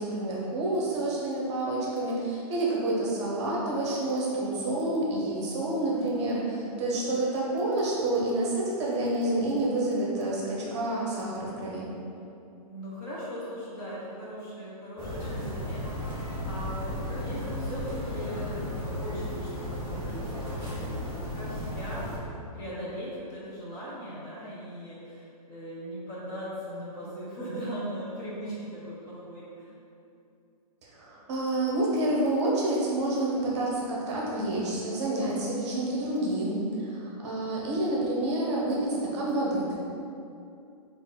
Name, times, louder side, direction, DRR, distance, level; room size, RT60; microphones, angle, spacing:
voice 1, 0.0-6.4 6.8-11.9 30.9-39.8, right 1 dB, 45° right, -5 dB, 0.9 m, -28 dB
voice 2, 5.9-6.9 12.6-16.2 16.4-22.1 22.5-29.7, equal, 15° left, -8 dB, 0.6 m, -39 dB
sound 1, 15.0-22.2, left 1 dB, 10° right, 1.0 m, -34 dB
3.9 x 2.5 x 3.8 m, 2.7 s
hypercardioid pair, 165°, 20 cm